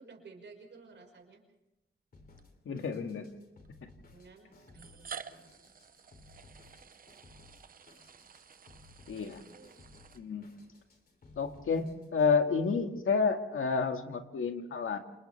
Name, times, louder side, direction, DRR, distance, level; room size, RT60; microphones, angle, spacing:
voice 1, 0.0-1.4 4.1-5.5 9.2-9.9, right 4 dB, 60° right, 2 dB, 5.6 m, -54 dB
sound 1, 1.2-1.4 2.4-2.5 3.6-3.7 4.7-10.7, right 6 dB, 40° right, 0.7 m, -50 dB
Drum kit, 2.1-12.3, left 2 dB, 45° left, 3.2 m, -59 dB
voice 2, 2.7-3.3 9.1-9.5 10.1-10.5 11.4-15.0, left 5 dB, 75° left, 5 dB, 2.0 m, -30 dB
29.5 x 28.0 x 3.5 m, 0.92 s
wide cardioid pair, 175°, 21 cm